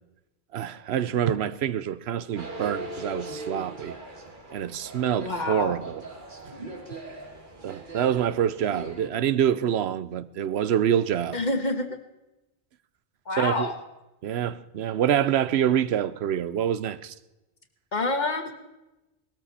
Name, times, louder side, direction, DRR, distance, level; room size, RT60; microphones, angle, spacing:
voice 1, 0.5-4.0 4.5-6.0 6.5-6.6 7.6-11.4 13.4-13.7 14.2-17.1, right 9 dB, 90° right, 1.0 m, -26 dB
sound 1, 2.4-9.1, right 1 dB, 50° right, 2.1 m, -40 dB
voice 2, 5.1-5.8 11.3-12.0 13.3-13.7 17.9-18.5, left 2 dB, 45° left, 1.6 m, -27 dB
19.0 x 13.5 x 4.2 m
omnidirectional pair, 1.0 m